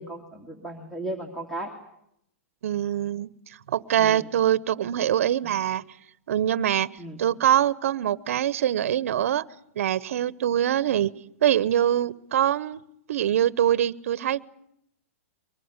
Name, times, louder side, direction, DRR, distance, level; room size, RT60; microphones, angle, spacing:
voice 1, 0.0-1.7 4.0-4.3 7.0-7.2, right 1 dB, 5° left, 5 dB, 2.4 m, -35 dB
voice 2, 2.6-3.3 3.7-5.8 6.3-6.9 7.2-9.4 9.8-11.1 11.4-12.8 13.1-14.4, right 11 dB, 70° right, 18 dB, 0.9 m, -23 dB
23.5 x 20.0 x 9.7 m, 0.76 s
hypercardioid pair, 150°, 8 cm